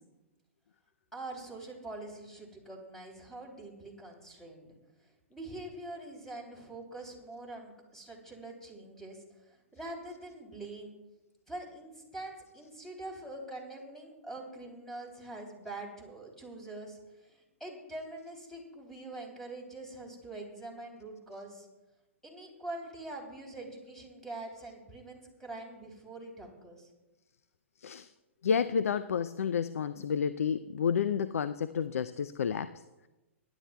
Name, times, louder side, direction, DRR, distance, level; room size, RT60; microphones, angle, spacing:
voice 1, 1.1-4.7 5.3-10.9 11.5-21.7 22.2-26.9, right 2 dB, 5° left, 0 dB, 3.2 m, -44 dB
voice 2, 28.4-32.8, left 7 dB, 80° left, 14 dB, 0.4 m, -30 dB
22.0 x 10.5 x 2.3 m, 1.1 s
hypercardioid pair, 125°, 8 cm